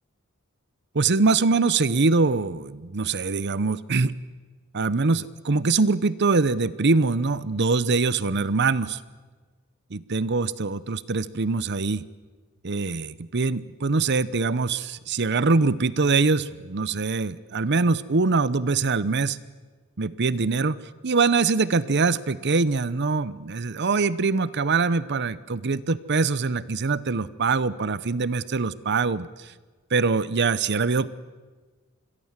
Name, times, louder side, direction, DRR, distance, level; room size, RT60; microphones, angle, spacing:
voice 1, 0.9-4.1 4.7-9.0 9.9-12.0 12.6-19.4 20.0-20.8 21.0-29.3 29.9-31.1, right 4 dB, 55° right, 17 dB, 0.8 m, -23 dB
27.0 x 22.0 x 7.4 m, 1.4 s
head